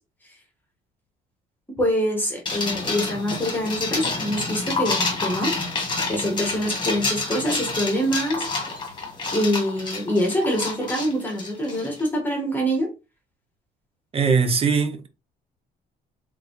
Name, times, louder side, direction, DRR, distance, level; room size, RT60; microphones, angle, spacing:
voice 1, 1.8-5.5 6.1-8.5 9.3-12.9, equal, 10° left, 1.7 m, -25 dB
sound 1, 2.5-12.0, left 3 dB, 25° left, 1.7 m, -28 dB
voice 2, 14.1-15.1, right 5 dB, 35° right, 0.8 m, -20 dB
3.7 x 3.7 x 3.1 m
cardioid pair, 110°, 17 cm